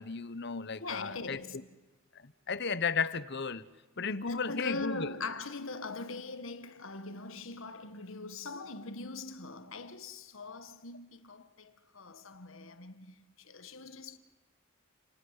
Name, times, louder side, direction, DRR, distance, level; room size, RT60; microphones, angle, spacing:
voice 1, 0.0-1.4 2.2-3.6 4.0-5.1, left 5 dB, 55° left, 1.0 m, -34 dB
voice 2, 0.8-1.7 4.3-14.2, left 3 dB, 75° left, 1.5 m, -41 dB
29.0 x 19.5 x 9.7 m
head